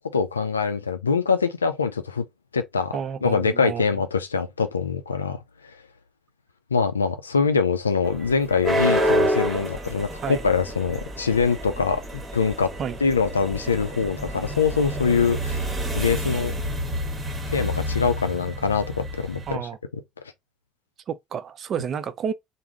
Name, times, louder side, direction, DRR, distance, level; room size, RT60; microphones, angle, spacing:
voice 1, 0.1-2.2 2.5-2.9 3.2-5.4 6.7-12.7 13.0-16.5 17.5-19.6, left 5 dB, 90° left, 0.3 m, -24 dB
voice 2, 2.9-3.8 10.2-10.4 12.8-13.0 19.5-19.8 21.1-22.3, right 7 dB, 50° right, 0.4 m, -30 dB
sound 1, 8.0-19.5, equal, 30° right, 1.1 m, -28 dB
3.4 x 2.0 x 3.5 m
figure-of-eight pair, 55°, 0 cm